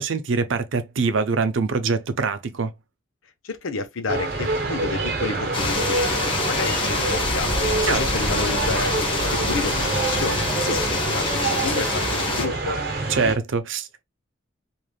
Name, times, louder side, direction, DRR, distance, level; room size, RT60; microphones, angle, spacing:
voice 1, 0.0-2.7 7.8-8.0 13.1-14.0, right 4 dB, 70° right, 0.5 m, -24 dB
voice 2, 3.4-7.5 7.9-12.8, left 4 dB, 85° left, 0.7 m, -30 dB
sound 1, 4.1-13.4, right 2 dB, 50° right, 0.9 m, -27 dB
sound 2, 5.5-12.5, left 2 dB, 25° left, 0.9 m, -25 dB
3.3 x 2.5 x 2.3 m
head